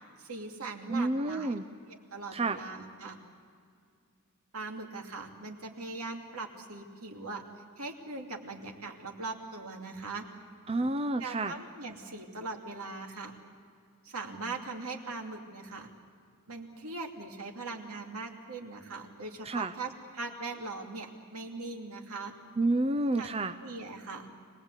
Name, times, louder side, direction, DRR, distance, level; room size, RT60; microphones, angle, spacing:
voice 1, 0.2-1.6 1.9-3.2 4.5-7.4 7.8-10.2 11.2-13.4 14.0-15.9 16.5-22.3 23.2-23.3 23.6-24.3, right 3 dB, 75° right, 1 dB, 2.7 m, -40 dB
voice 2, 0.9-1.6 2.3-2.6 10.7-11.6 19.4-19.7 22.6-23.5, right 2 dB, 25° right, 8 dB, 0.6 m, -29 dB
25.5 x 19.5 x 8.3 m, 2.2 s
head